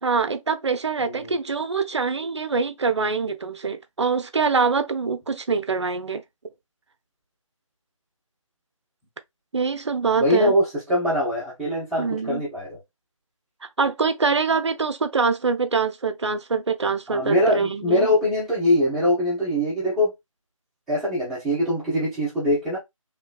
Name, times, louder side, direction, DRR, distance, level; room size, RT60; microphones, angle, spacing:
voice 1, 0.0-6.2 9.5-10.5 12.0-12.4 13.8-18.1, right 5 dB, 55° right, 0.5 m, -24 dB
voice 2, 10.2-12.8 17.1-20.1 20.9-22.8, left 1 dB, ahead, 0.7 m, -22 dB
3.2 x 3.1 x 2.4 m
figure-of-eight pair, 155°, 17 cm